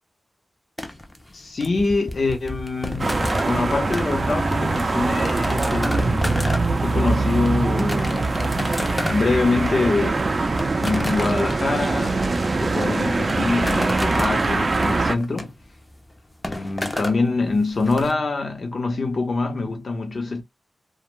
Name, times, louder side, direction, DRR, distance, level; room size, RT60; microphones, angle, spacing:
sound 1, 0.8-18.1, left 1 dB, 20° left, 0.6 m, -32 dB
voice 1, 1.3-6.5 6.8-10.2 10.8-15.5 16.5-20.4, left 3 dB, 65° left, 0.8 m, -25 dB
sound 2, 3.0-15.2, right 3 dB, 50° right, 0.4 m, -23 dB
2.4 x 2.1 x 3.1 m
cardioid pair, 65°, 0 cm